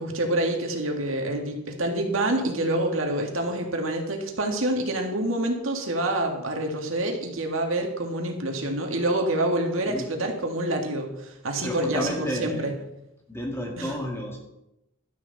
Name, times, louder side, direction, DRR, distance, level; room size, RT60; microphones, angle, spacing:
voice 1, 0.0-12.7 13.8-13.9, right 1 dB, 80° right, 2 dB, 2.0 m, -27 dB
voice 2, 11.6-12.7 13.3-14.4, equal, 10° left, 0 dB, 2.2 m, -31 dB
12.0 x 10.5 x 4.1 m, 0.87 s
head